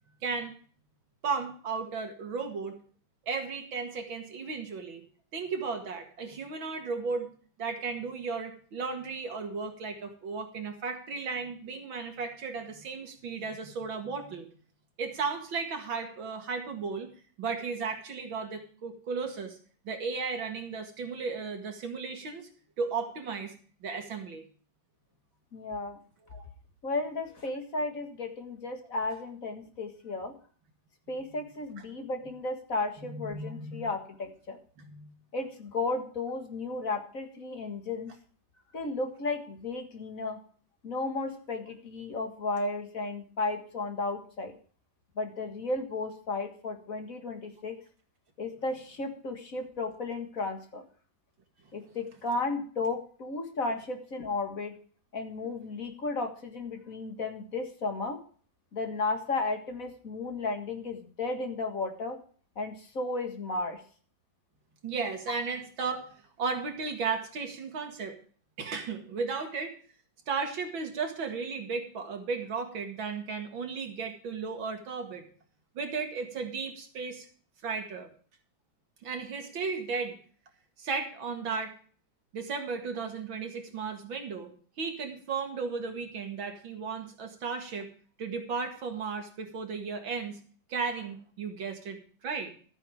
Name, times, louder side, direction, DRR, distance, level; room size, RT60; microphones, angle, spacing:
voice 1, 0.2-0.5 1.2-2.7 3.2-5.0 5.3-7.3 7.6-14.5 15.0-17.1 17.4-19.6 19.8-22.5 22.8-23.5 23.8-24.4 26.3-26.4 33.1-33.9 34.8-35.1 64.8-66.1 66.4-68.2 68.6-69.7 70.3-75.2 75.7-77.3 77.6-78.1 79.0-80.2 80.8-81.7 82.3-84.5 84.8-87.9 88.2-90.4 90.7-92.5, right 5 dB, 85° right, 5 dB, 2.8 m, -35 dB
voice 2, 25.5-26.0 26.8-30.3 31.1-34.6 35.3-38.1 38.7-40.4 40.8-44.5 45.2-47.8 48.4-50.8 51.7-54.7 55.1-58.2 58.7-62.2 62.6-63.8, left 3 dB, 45° left, 5 dB, 2.1 m, -34 dB
13.0 x 9.1 x 5.0 m, 0.43 s
omnidirectional pair, 2.1 m